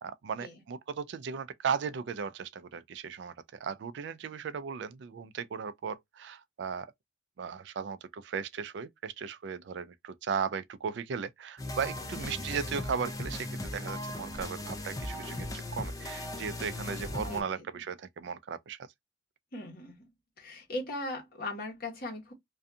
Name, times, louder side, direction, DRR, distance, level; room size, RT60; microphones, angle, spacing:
voice 1, 0.0-6.9 7.4-18.9, right 6 dB, 60° right, 0.3 m, -36 dB
sound 1, 11.6-17.4, left 1 dB, 15° left, 0.4 m, -38 dB
voice 2, 12.1-12.4 17.2-17.7 19.5-20.1 20.4-22.3, left 2 dB, 45° left, 1.1 m, -39 dB
2.6 x 2.3 x 2.5 m
head